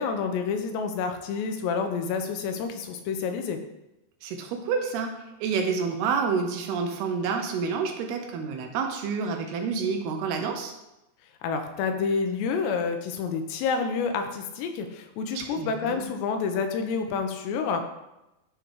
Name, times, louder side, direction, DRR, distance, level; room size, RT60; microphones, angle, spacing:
voice 1, 0.0-3.6 11.4-17.9, left 5 dB, 85° left, 6 dB, 3.0 m, -28 dB
voice 2, 4.2-5.1 5.4-10.7 15.4-16.1, right 5 dB, 75° right, 4 dB, 2.6 m, -29 dB
11.5 x 3.8 x 4.7 m, 0.94 s
omnidirectional pair, 4.9 m